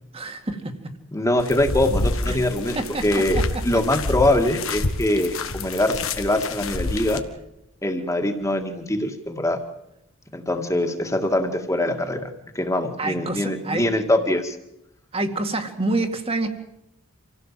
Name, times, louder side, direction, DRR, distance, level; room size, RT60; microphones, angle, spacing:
voice 1, 0.1-1.0 2.3-2.4 2.8-3.8 13.0-13.9 15.1-16.5, right 2 dB, 30° right, 6 dB, 2.2 m, -28 dB
voice 2, 1.1-2.8 3.0-7.2 7.8-9.6 10.3-14.6, left 1 dB, 15° left, 5 dB, 2.1 m, -23 dB
sound 1, 1.4-7.2, left 2 dB, 80° left, 1.7 m, -28 dB
26.5 x 16.5 x 7.6 m, 0.84 s
head